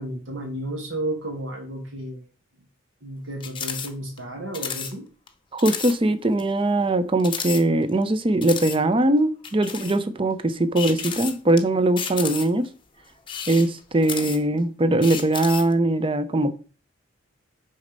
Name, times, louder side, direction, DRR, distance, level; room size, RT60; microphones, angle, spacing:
voice 1, 0.0-2.3 3.0-5.1, right 1 dB, 80° right, 2.0 m, -32 dB
sound 1, 3.4-3.9 4.2-4.3 4.5-4.9 5.3-5.4 5.6-5.9 6.4-6.5 7.2-8.0 8.4-8.8 9.4-10.0 10.7-11.6 12.0-12.7 13.2-14.6 15.0-15.7, left 7 dB, 25° left, 0.8 m, -32 dB
voice 2, 5.5-12.7 13.5-16.5, right 2 dB, 25° right, 0.6 m, -21 dB
6.5 x 4.2 x 5.3 m
head